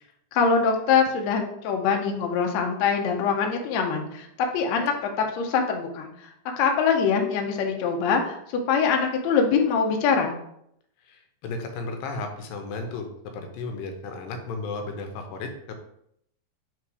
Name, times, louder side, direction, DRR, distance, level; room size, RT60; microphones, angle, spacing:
voice 1, 0.3-4.3 4.5-6.1 6.6-8.3 8.7-10.3, left 6 dB, 70° left, 3 dB, 1.8 m, -23 dB
voice 2, 11.1-15.8, left 3 dB, 90° left, 5 dB, 2.5 m, -34 dB
4.9 x 4.2 x 4.8 m, 0.74 s
omnidirectional pair, 3.9 m